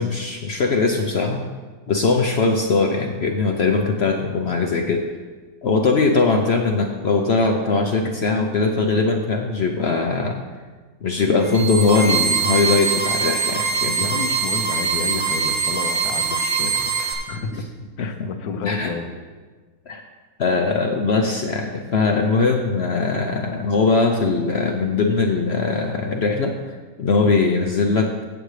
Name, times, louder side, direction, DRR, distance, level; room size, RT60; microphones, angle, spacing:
voice 1, 0.0-1.4 1.9-5.1 5.6-10.4 11.0-14.0 17.5-17.6 18.0-18.3 18.6-18.9 19.9-20.0 20.4-28.2, left 4 dB, 55° left, 3 dB, 0.8 m, -20 dB
sound 1, 11.4-17.1, right 5 dB, 60° right, 2.6 m, -23 dB
voice 2, 14.0-17.7 18.0-19.1, left 4 dB, 85° left, 7 dB, 1.4 m, -30 dB
15.0 x 8.0 x 3.2 m, 1.4 s
omnidirectional pair, 1.5 m